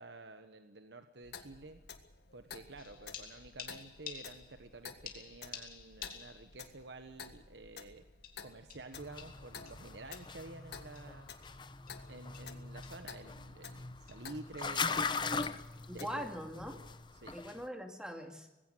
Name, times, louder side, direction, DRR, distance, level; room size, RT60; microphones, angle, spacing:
voice 1, 0.0-1.8 2.3-8.0 8.4-11.3 12.1-16.4 17.1-17.5, right 2 dB, 80° right, 8 dB, 1.2 m, -50 dB
Clock, 1.2-16.2, left 6 dB, 70° left, 1.7 m, -53 dB
sound 1, 2.8-4.7 5.1-6.6 7.0-7.1 8.2-10.4 11.0-11.1 11.4-11.6 11.9-12.1 12.3-12.6 12.8-13.1 14.1-14.3, left 8 dB, 50° left, 3.0 m, -50 dB
sound 2, 8.9-17.6, left 4 dB, 25° left, 0.8 m, -41 dB
voice 2, 15.9-16.8 17.3-18.5, equal, 5° right, 4 dB, 2.1 m, -42 dB
20.0 x 16.5 x 7.9 m, 1.1 s
head